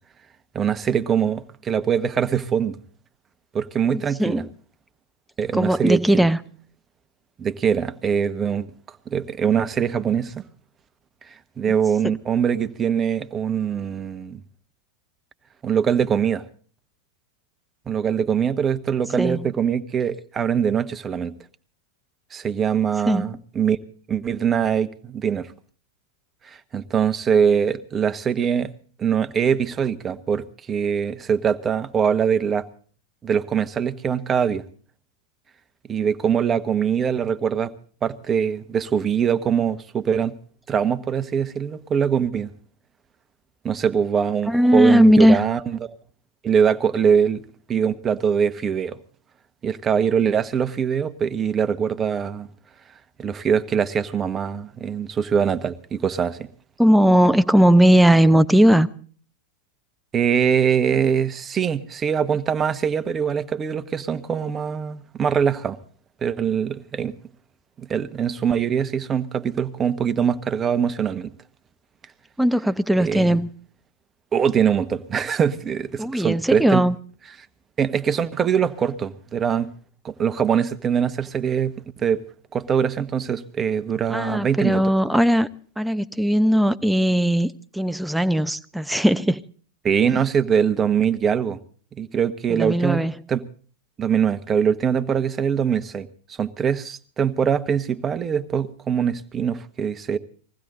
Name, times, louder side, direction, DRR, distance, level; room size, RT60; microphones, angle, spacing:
voice 1, 0.5-2.8 3.5-4.4 5.4-6.3 7.4-8.7 9.1-10.4 11.3-14.4 15.6-16.4 17.9-21.3 22.3-23.8 24.1-25.5 26.4-28.7 29.0-32.6 33.2-34.6 35.9-37.7 38.0-40.3 40.7-42.5 43.6-45.9 46.4-47.4 47.7-49.0 49.6-52.5 53.2-56.5 60.1-65.8 66.2-67.1 67.8-71.3 73.0-73.4 74.3-76.8 77.8-79.7 80.0-82.2 82.5-84.9 89.8-91.6 92.0-93.0 93.3-93.4 94.0-96.1 96.4-100.2, right 7 dB, 25° right, 1.2 m, -23 dB
voice 2, 3.9-4.5 5.5-6.4 19.2-19.5 23.0-23.3 44.5-45.4 56.8-58.9 72.4-73.5 76.0-77.0 84.1-85.5 85.8-89.4 90.0-90.2 92.5-93.1, equal, 5° right, 0.8 m, -18 dB
21.0 x 15.5 x 3.9 m
hypercardioid pair, 95°, 0 cm